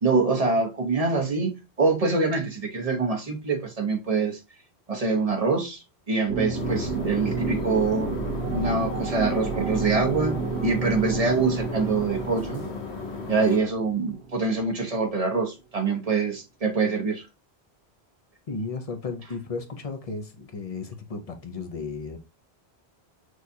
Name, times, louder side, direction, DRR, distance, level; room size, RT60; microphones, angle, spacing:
voice 1, 0.0-1.5 1.8-4.4 4.9-8.2 8.5-12.6 13.3-17.3, right 4 dB, 35° right, 1.1 m, -25 dB
sound 1, 6.3-14.8, right 4 dB, 85° right, 1.3 m, -31 dB
sound 2, 6.5-13.6, left 6 dB, 85° left, 1.2 m, -37 dB
voice 2, 18.5-22.2, left 4 dB, 40° left, 0.7 m, -34 dB
6.3 x 2.5 x 2.7 m
omnidirectional pair, 1.1 m